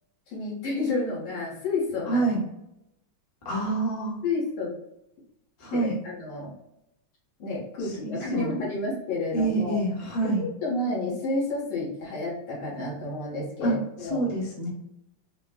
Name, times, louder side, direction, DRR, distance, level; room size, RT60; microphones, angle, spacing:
voice 1, 0.3-2.2 4.2-4.7 5.7-6.5 7.4-9.8 10.2-14.2, left 2 dB, 80° left, -6 dB, 2.4 m, -30 dB
voice 2, 2.1-2.4 3.4-4.2 5.6-5.9 7.8-8.5 9.3-10.4 13.6-14.7, right 2 dB, 25° left, -5 dB, 1.0 m, -27 dB
6.7 x 2.2 x 2.3 m, 0.84 s
omnidirectional pair, 2.3 m